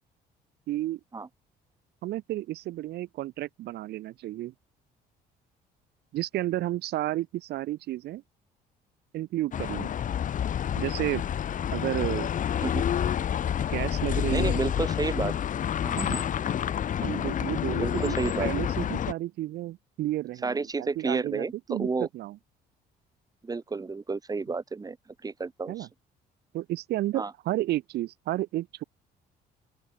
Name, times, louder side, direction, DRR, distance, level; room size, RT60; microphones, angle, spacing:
voice 1, 0.7-1.0 2.0-4.5 6.1-8.2 9.1-9.9 10.8-11.2 11.7-12.3 13.7-14.6 16.0-16.2 17.0-22.4 25.7-25.9 26.5-28.8, right 15 dB, 75° right, 2.8 m, -32 dB
sound 1, 9.5-19.1, left 9 dB, 50° left, 2.9 m, -28 dB
voice 2, 14.3-15.3 15.8-16.0 17.8-18.5 20.4-22.1 23.4-25.0 25.2-25.9 27.2-27.3, right 4 dB, 20° right, 3.6 m, -31 dB
open air
cardioid pair, 110°, 17 cm